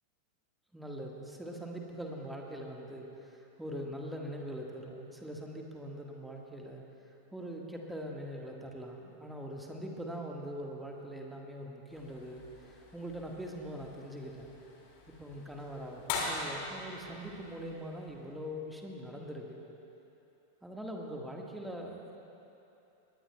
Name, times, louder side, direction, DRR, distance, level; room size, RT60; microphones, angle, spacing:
voice 1, 0.7-6.8 7.3-14.5 15.2-19.6 20.6-22.2, equal, 5° right, 0 dB, 1.5 m, -42 dB
Tilt Train Door Lock & Release, 11.9-18.4, left 3 dB, 45° left, 2.3 m, -43 dB
19.5 x 19.0 x 2.3 m, 2.9 s
figure-of-eight pair, 90°, 0 cm